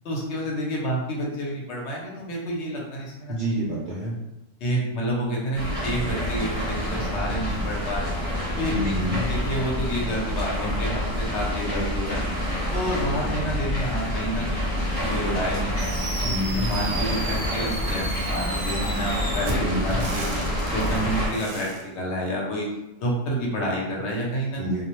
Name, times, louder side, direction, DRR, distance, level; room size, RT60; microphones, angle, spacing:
voice 1, 0.0-3.3 4.6-8.1 8.5-9.0 9.3-12.2 12.7-14.7 15.0-15.9 16.4-20.3 20.7-22.7 23.0-24.6, equal, 65° left, -2 dB, 0.9 m, -29 dB
voice 2, 3.3-4.1 8.7-9.3 16.2-16.7 19.6-20.0 24.6-24.8, equal, 60° right, -7 dB, 0.5 m, -27 dB
sound 1, 5.5-21.3, left 1 dB, 10° left, 0.9 m, -27 dB
Fireworks, 15.8-21.8, right 2 dB, 85° right, 1.0 m, -34 dB
2.3 x 2.0 x 2.9 m, 0.94 s
omnidirectional pair, 1.3 m